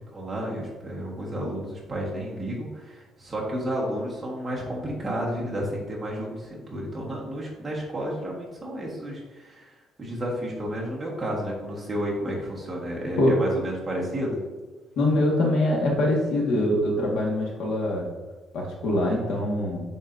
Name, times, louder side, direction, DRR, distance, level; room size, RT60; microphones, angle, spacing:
voice 1, 0.1-14.4, equal, 15° right, -4 dB, 1.4 m, -31 dB
voice 2, 15.0-18.1 18.5-19.8, left 1 dB, 75° left, -2 dB, 1.6 m, -23 dB
8.7 x 4.2 x 2.6 m, 1.3 s
cardioid pair, 165°, 0 cm